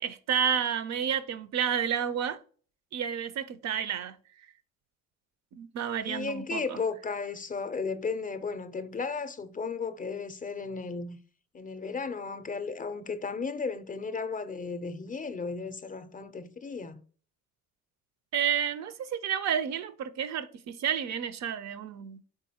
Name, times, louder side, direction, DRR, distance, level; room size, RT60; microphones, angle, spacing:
voice 1, 0.0-2.4 2.9-4.2 5.6-6.8 18.3-22.2, right 8 dB, 65° right, 0.5 m, -30 dB
voice 2, 6.0-11.2 11.5-17.0, left 4 dB, 30° left, 0.5 m, -34 dB
3.8 x 3.7 x 2.7 m
cardioid pair, 90°, 30 cm